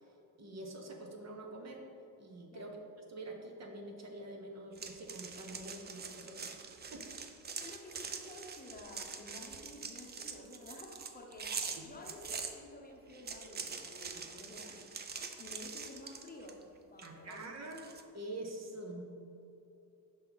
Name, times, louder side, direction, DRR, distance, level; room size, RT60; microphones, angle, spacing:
voice 1, 0.4-1.8 2.2-2.8 3.1-7.1 11.8-11.9 17.0-17.8 18.1-19.0, right 1 dB, 45° right, 2 dB, 0.8 m, -46 dB
sound 1, 4.8-12.5 13.1-16.6 17.0-18.0, right 5 dB, 30° right, 0.4 m, -44 dB
voice 2, 7.6-14.8 15.4-16.6 16.9-17.5, left 2 dB, 25° left, 0 dB, 0.7 m, -51 dB
5.7 x 5.4 x 3.9 m, 2.8 s
cardioid pair, 120°, 38 cm